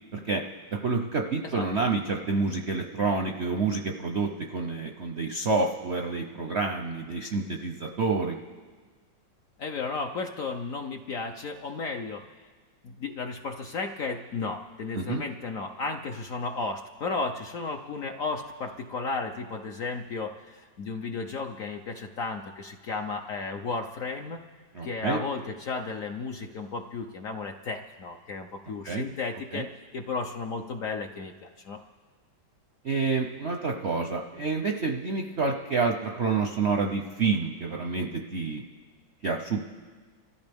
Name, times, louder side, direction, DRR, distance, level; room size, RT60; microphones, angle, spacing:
voice 1, 0.1-0.4 0.7-8.4 14.9-15.2 24.7-25.2 28.8-29.0 29.5-29.6 32.8-38.6 39.2-39.6, right 4 dB, 60° right, 2 dB, 0.7 m, -28 dB
voice 2, 9.6-12.2 12.8-24.4 24.8-29.7 29.9-31.8, left 4 dB, 65° left, 4 dB, 0.9 m, -34 dB
29.0 x 14.0 x 3.5 m, 1.5 s
omnidirectional pair, 2.1 m